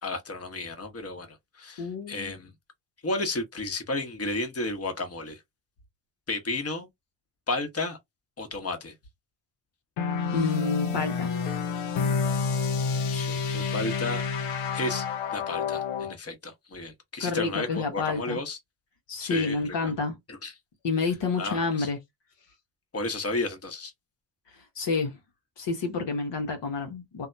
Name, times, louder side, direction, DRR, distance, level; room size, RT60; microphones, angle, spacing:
voice 1, 0.0-2.5 3.0-5.4 6.3-6.9 7.5-8.0 8.4-8.9 13.1-14.3 14.7-18.6 19.2-19.9 20.3-20.5 21.4-21.9 22.9-23.9, left 2 dB, 30° left, 1.1 m, -33 dB
voice 2, 1.8-2.3 10.3-11.3 17.2-18.4 19.1-20.2 20.8-22.0 24.7-25.2 25.6-27.3, left 4 dB, 60° left, 1.0 m, -29 dB
sound 1, 10.0-16.1, left 5 dB, 80° left, 0.8 m, -29 dB
2.7 x 2.2 x 2.6 m
hypercardioid pair, 45°, 49 cm